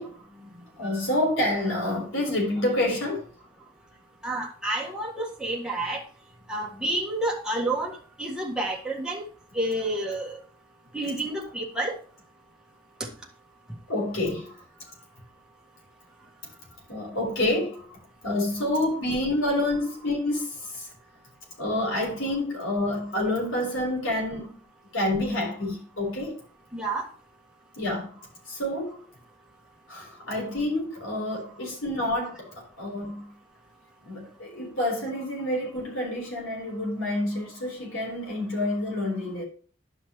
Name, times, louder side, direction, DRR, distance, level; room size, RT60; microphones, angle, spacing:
voice 1, 0.0-3.2 13.9-14.5 16.9-17.8 18.2-20.9 21.6-24.6 24.9-26.4 27.8-28.1 28.5-29.0 29.9-33.3 34.0-39.4, left 1 dB, 70° left, 4.2 m, -28 dB
voice 2, 4.2-6.0 6.5-9.2 9.5-10.4 10.9-12.0 26.7-27.1, right 1 dB, 5° right, 1.6 m, -29 dB
11.5 x 5.7 x 3.2 m
head